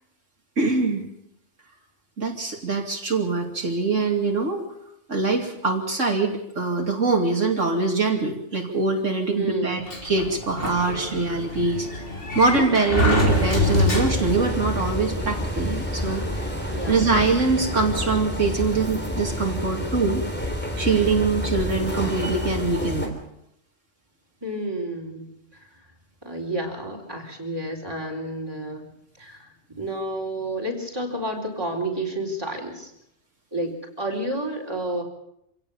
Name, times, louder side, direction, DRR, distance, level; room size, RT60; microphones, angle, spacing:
voice 1, 0.6-1.0 2.2-4.6 5.1-11.9 12.3-16.5 16.9-20.3 20.8-23.2, right 3 dB, 65° right, 1 dB, 3.0 m, -23 dB
voice 2, 9.4-9.8 16.7-17.1 24.4-25.3 25.5-25.7 26.2-28.9 29.2-32.9 33.5-35.0, right 1 dB, 20° right, 0 dB, 4.1 m, -30 dB
Sliding door, 9.9-14.5, left 1 dB, 45° left, 3.5 m, -25 dB
sound 1, 13.3-23.1, left 1 dB, 10° left, 3.3 m, -29 dB
26.0 x 17.5 x 7.1 m, 0.79 s
omnidirectional pair, 1.4 m